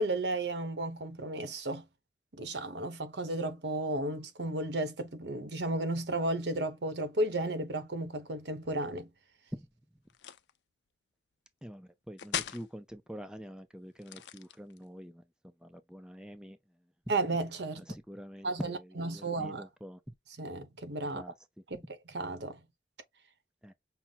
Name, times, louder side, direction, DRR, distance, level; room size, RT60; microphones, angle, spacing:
voice 1, 0.0-1.8 2.3-9.1 17.1-17.9 18.4-19.7 20.4-21.2 21.7-21.8 22.1-22.6, right 2 dB, 80° right, 0.9 m, -33 dB
sound 1, 10.1-10.6 12.2-12.7 14.0-14.9, left 9 dB, 85° left, 0.5 m, -38 dB
voice 2, 11.6-15.2 15.6-16.6 17.9-20.1 21.1-21.3 23.6-23.7, equal, 5° right, 0.4 m, -45 dB
5.7 x 2.0 x 3.9 m
head